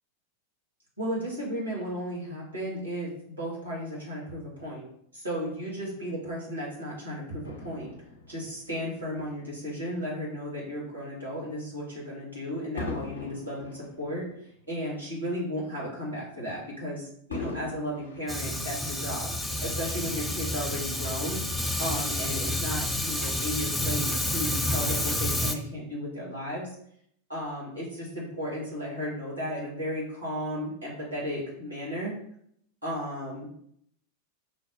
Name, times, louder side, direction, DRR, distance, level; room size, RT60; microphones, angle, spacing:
voice 1, 1.0-3.1 3.4-4.8 5.1-7.9 8.3-14.2 14.7-19.3 19.6-21.4 21.8-26.7 27.3-32.1 32.8-33.5, equal, 80° right, -5 dB, 1.5 m, -34 dB
Fireworks, 7.4-10.0 10.7-10.9 12.8-15.3 15.6-15.7 17.3-19.2 19.9-20.0, left 3 dB, 75° left, 0.6 m, -41 dB
Fire, 18.3-25.5, left 1 dB, 5° left, 0.3 m, -29 dB
5.5 x 2.0 x 2.5 m, 0.69 s
figure-of-eight pair, 90°, 0 cm